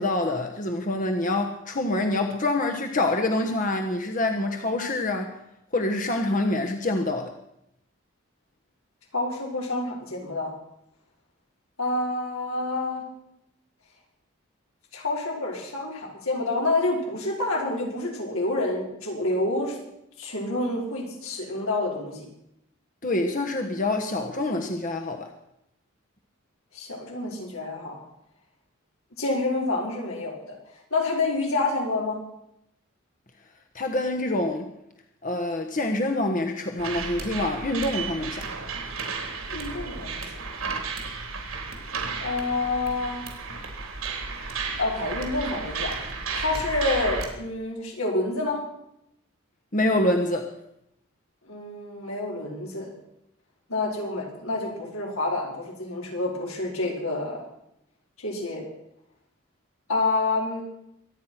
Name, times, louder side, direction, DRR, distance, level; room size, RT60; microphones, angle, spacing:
voice 1, 0.0-5.3 5.7-7.3 23.0-25.3 33.7-34.7 35.2-38.4 49.7-50.5, left 2 dB, 40° left, 4 dB, 1.3 m, -26 dB
voice 2, 9.1-10.5 11.8-13.0 14.9-19.8 20.2-22.3 26.7-27.9 29.2-30.5 30.9-32.2 39.5-40.3 42.2-43.3 44.3-44.5 44.8-45.9 46.3-48.6 51.5-52.9 53.7-57.4 58.2-58.6 59.9-60.6, left 2 dB, 85° left, -1 dB, 5.4 m, -28 dB
sound 1, 36.8-47.3, right 4 dB, 85° right, 3.5 m, -33 dB
24.5 x 9.5 x 5.9 m, 0.80 s
head